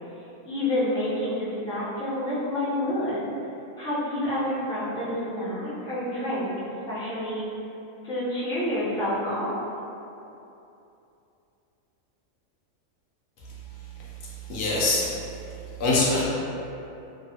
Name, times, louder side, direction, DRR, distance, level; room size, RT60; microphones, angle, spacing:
voice 1, 0.4-3.3 3.8-6.5 6.9-7.5 8.0-9.5, left 1 dB, 5° left, -12 dB, 0.5 m, -28 dB
voice 2, 14.4-15.1 15.8-16.2, left 2 dB, 75° left, -6 dB, 1.0 m, -23 dB
3.1 x 2.2 x 2.8 m, 2.8 s
omnidirectional pair, 1.4 m